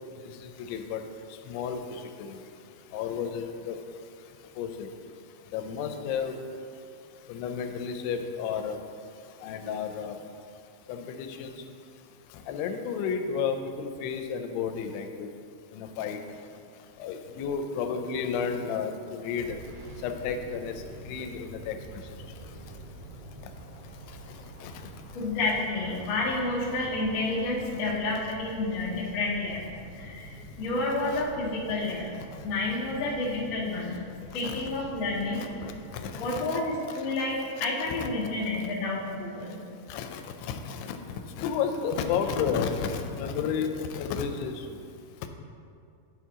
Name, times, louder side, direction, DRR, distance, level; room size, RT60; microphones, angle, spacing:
voice 1, 0.6-1.0 1.5-2.4 2.9-3.8 4.6-4.9 5.5-6.4 7.3-8.8 9.4-10.2 10.9-11.5 12.5-15.3 15.7-16.2 17.0-19.6 20.0-20.7 21.1-21.8 24.6-24.7 31.1-31.2 34.4-34.6 35.4-36.6 36.9-37.0 37.6-37.7 38.0-38.1 39.9-41.0 41.4-44.6, left 6 dB, 90° left, 6 dB, 2.6 m, -32 dB
sound 1, 19.4-36.4, right 1 dB, 75° right, 2.3 m, -46 dB
voice 2, 25.1-29.6 29.9-32.1 32.4-34.0 34.3-35.4 36.2-39.6, left 2 dB, 70° left, -7 dB, 1.1 m, -30 dB
9.5 x 4.5 x 3.6 m, 2.4 s
omnidirectional pair, 4.6 m